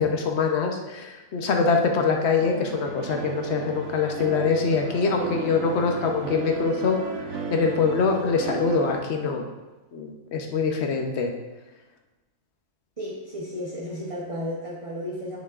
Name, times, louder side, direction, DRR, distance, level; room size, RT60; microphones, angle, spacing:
voice 1, 0.0-7.0 7.3-9.4 9.9-11.3, left 5 dB, 55° left, 3 dB, 1.0 m, -24 dB
sound 1, 2.4-9.0, right 4 dB, 65° right, 0.9 m, -34 dB
voice 2, 13.0-15.4, equal, 30° right, -5 dB, 0.9 m, -33 dB
10.0 x 5.3 x 2.5 m, 1.1 s
omnidirectional pair, 1.4 m